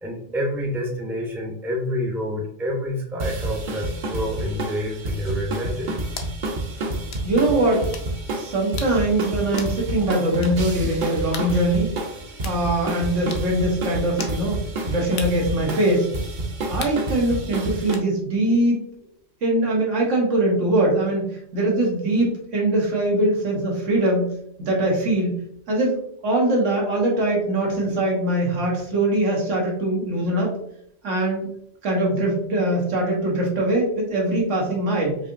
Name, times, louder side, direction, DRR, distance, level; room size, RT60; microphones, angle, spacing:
voice 1, 0.0-6.0, equal, ahead, -1 dB, 0.4 m, -28 dB
sound 1, 3.2-18.0, right 2 dB, 50° right, 0.7 m, -29 dB
sound 2, 5.2-5.4 6.2-6.4 7.1-7.3 7.9-8.1 8.8-9.0 9.6-9.8 10.4-10.6 11.3-11.5 12.4-12.6 13.3-13.5 14.2-14.4 15.2-15.4 16.8-17.0 17.9-18.1, left 6 dB, 65° left, 0.8 m, -36 dB
voice 2, 7.2-7.9 8.3-11.9 12.4-14.6 14.8-16.1 16.7-18.9 19.4-25.4 25.7-30.6 31.0-31.5 31.8-35.2, right 1 dB, 90° right, -2 dB, 1.4 m, -22 dB
4.8 x 2.7 x 2.5 m, 0.71 s
omnidirectional pair, 1.2 m